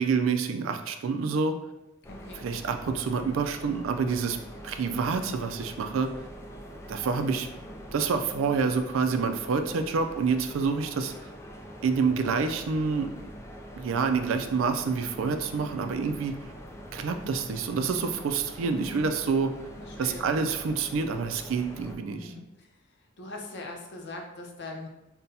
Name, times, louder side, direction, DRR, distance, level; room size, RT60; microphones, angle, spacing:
voice 1, 0.0-1.5 2.4-4.4 4.6-6.1 6.9-7.6 7.9-11.1 11.8-13.1 13.8-16.3 16.9-19.5 20.0-22.3, right 5 dB, 85° right, 7 dB, 0.4 m, -27 dB
sound 1, 2.0-21.9, equal, 15° left, 0.4 m, -44 dB
voice 2, 2.1-2.5 18.7-19.1 19.8-20.3 22.1-22.7 23.2-24.9, left 2 dB, 60° left, 2 dB, 0.6 m, -41 dB
5.4 x 2.2 x 2.7 m, 0.93 s
head